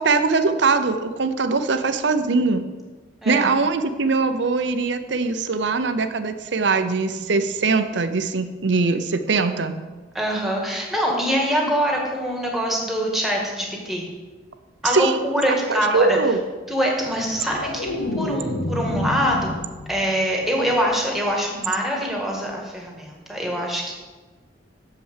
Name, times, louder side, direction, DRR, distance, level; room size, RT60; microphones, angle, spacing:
voice 1, 0.0-2.6 3.3-9.8 14.8-15.2 15.7-16.4, right 4 dB, 70° right, 9 dB, 0.7 m, -21 dB
voice 2, 10.1-14.1 14.8-16.2 16.7-17.9 18.2-19.6 19.9-23.9, equal, ahead, -1 dB, 1.6 m, -24 dB
sound 1, 17.0-20.2 20.5-20.9, left 1 dB, 75° left, 0.9 m, -29 dB
6.9 x 5.7 x 7.4 m, 1.3 s
head